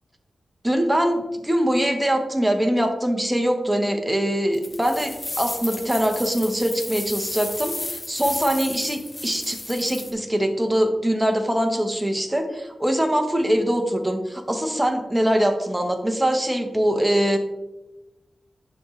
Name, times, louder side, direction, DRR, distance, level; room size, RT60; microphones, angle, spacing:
voice 1, 0.6-17.4, equal, 10° right, 5 dB, 0.8 m, -23 dB
sound 1, 4.5-10.1, left 2 dB, 30° left, 0.9 m, -33 dB
10.5 x 3.6 x 3.1 m, 1.0 s
wide cardioid pair, 130°, 0 cm